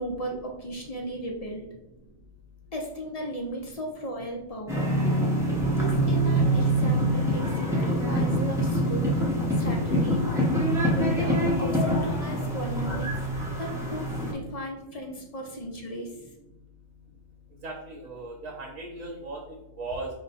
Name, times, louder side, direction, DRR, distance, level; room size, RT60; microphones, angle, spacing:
voice 1, 0.0-1.7 2.7-5.0 5.7-9.2 9.5-10.6 10.9-13.2 13.6-16.2, right 1 dB, 50° left, 0 dB, 0.4 m, -36 dB
sound 1, 4.7-14.3, right 1 dB, 5° right, 0.6 m, -25 dB
voice 2, 17.6-20.1, right 2 dB, 75° right, 0 dB, 1.1 m, -37 dB
4.8 x 2.2 x 4.0 m, 0.89 s
omnidirectional pair, 1.4 m